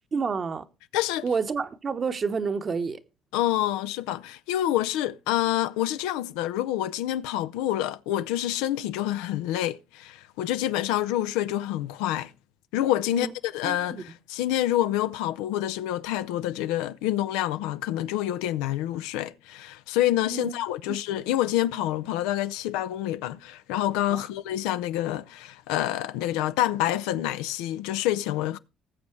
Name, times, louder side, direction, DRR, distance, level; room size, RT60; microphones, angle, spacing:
voice 1, 0.1-0.7 1.2-3.0 13.1-13.3 13.6-14.0 20.3-20.5 20.9-21.0 24.1-24.3, right 5 dB, 40° right, 1.0 m, -29 dB
voice 2, 0.9-1.2 3.3-12.3 12.7-28.6, left 13 dB, 85° left, 0.4 m, -27 dB
19.0 x 7.1 x 3.2 m
supercardioid pair, 65°, 0 cm